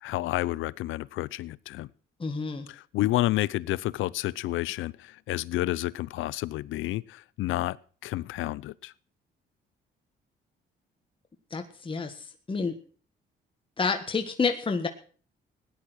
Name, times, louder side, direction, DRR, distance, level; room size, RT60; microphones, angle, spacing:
voice 1, 0.0-1.9 2.7-7.8 8.0-8.9, left 16 dB, 85° left, 0.6 m, -30 dB
voice 2, 2.2-2.7 11.5-12.7 13.8-14.9, left 4 dB, 25° left, 1.7 m, -29 dB
17.0 x 10.5 x 6.3 m
cardioid pair, 90°, 20 cm